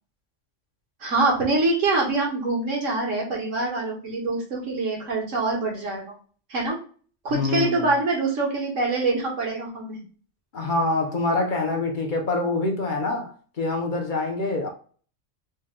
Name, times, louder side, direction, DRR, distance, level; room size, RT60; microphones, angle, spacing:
voice 1, 1.0-6.2 6.5-6.8 7.2-10.0, right 3 dB, 80° right, 1.7 m, -25 dB
voice 2, 7.3-7.9 10.5-14.7, left 2 dB, 50° left, 0.7 m, -25 dB
3.9 x 2.2 x 3.7 m
omnidirectional pair, 1.3 m